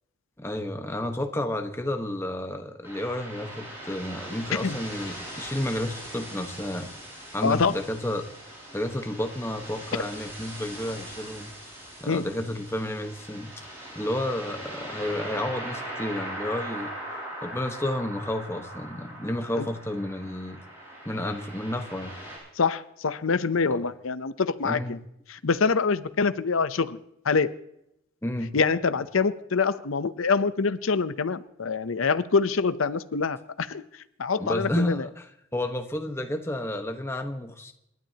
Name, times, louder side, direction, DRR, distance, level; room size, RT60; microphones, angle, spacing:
voice 1, 0.4-6.9 7.3-8.3 8.7-11.5 12.0-16.9 17.4-20.6 21.0-22.2 23.7-23.8 24.6-25.0 28.2-28.6 34.4-37.7, left 1 dB, 10° left, 5 dB, 1.2 m, -31 dB
surf pad, 2.8-22.4, right 1 dB, 10° right, 7.7 m, -40 dB
voice 2, 7.4-7.7 12.1-12.2 19.6-19.7 22.6-25.0 25.3-27.0 27.2-27.5 28.5-33.8 34.2-35.1, left 5 dB, 80° left, 13 dB, 0.7 m, -25 dB
28.5 x 12.0 x 2.9 m, 0.80 s
head